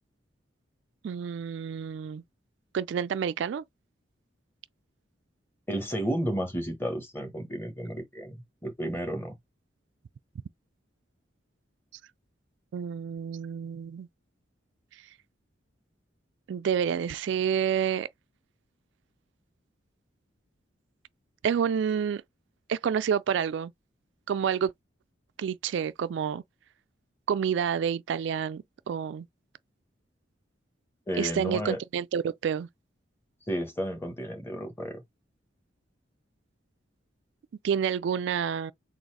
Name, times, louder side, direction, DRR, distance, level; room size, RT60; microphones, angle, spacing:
voice 1, 1.0-2.2 2.7-3.6 12.7-14.1 14.9-15.0 16.5-18.1 21.4-22.2 22.7-23.7 24.3-24.7 25.4-26.4 27.3-29.3 31.2-32.7 37.6-38.7, right 7 dB, 70° right, 0.3 m, -29 dB
voice 2, 5.7-8.4 8.6-9.3 31.1-31.8 33.5-35.0, equal, 10° left, 1.1 m, -32 dB
4.0 x 2.5 x 4.6 m
head